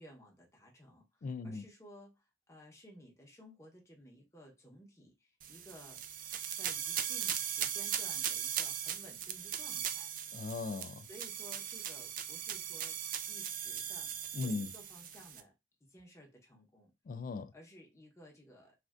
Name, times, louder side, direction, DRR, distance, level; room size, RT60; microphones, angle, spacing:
voice 1, 0.0-2.1 2.5-6.0 6.5-10.1 11.1-15.5 15.8-16.9 17.5-18.7, equal, 15° left, 1.0 m, -56 dB
voice 2, 1.2-1.6 10.3-11.1 14.3-14.7 17.1-17.5, left 4 dB, 50° left, 0.3 m, -38 dB
sound 1, 5.4-15.4, right 9 dB, 50° right, 0.4 m, -39 dB
3.3 x 2.5 x 2.4 m
head